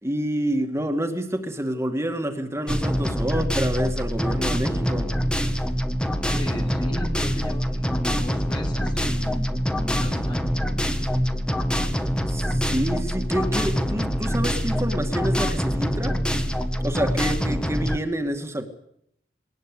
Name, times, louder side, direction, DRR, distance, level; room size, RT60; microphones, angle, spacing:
voice 1, 0.0-5.2 12.3-16.2 16.8-18.7, right 1 dB, 15° right, 6 dB, 2.1 m, -28 dB
sound 1, 2.7-18.0, equal, 5° left, 1.5 m, -25 dB
voice 2, 6.2-10.8, equal, 25° left, 3 dB, 3.1 m, -36 dB
21.5 x 19.5 x 8.4 m, 0.72 s
head